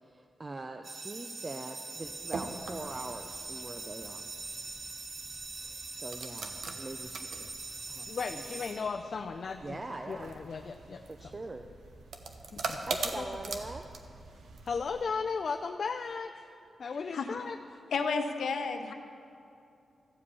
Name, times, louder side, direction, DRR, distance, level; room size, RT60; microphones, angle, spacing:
voice 1, 0.0-4.3 5.6-7.5 7.9-8.1 8.4-8.6 9.6-10.3 11.1-11.7 12.9-13.8, right 2 dB, 25° right, 6 dB, 0.4 m, -43 dB
sound 1, 0.8-9.5, right 3 dB, 40° right, 1.0 m, -43 dB
sound 2, 2.0-15.0, right 4 dB, 70° right, 0.8 m, -43 dB
voice 2, 8.1-9.8 10.1-11.3 12.5-12.9 13.2-13.3 14.6-16.4 16.8-17.6, left 5 dB, 50° left, 5 dB, 0.4 m, -36 dB
voice 3, 17.9-18.9, left 4 dB, 80° left, 5 dB, 0.8 m, -31 dB
14.0 x 5.0 x 8.3 m, 2.5 s
wide cardioid pair, 155°, 0 cm